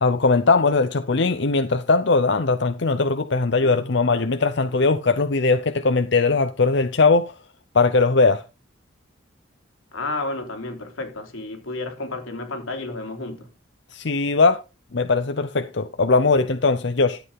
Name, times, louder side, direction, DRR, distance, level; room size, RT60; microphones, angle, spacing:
voice 1, 0.0-7.3 7.7-8.4 13.9-14.6 14.9-17.2, left 3 dB, 60° left, 0.7 m, -20 dB
voice 2, 9.9-13.5, left 2 dB, 90° left, 3.4 m, -31 dB
12.5 x 8.1 x 3.7 m
head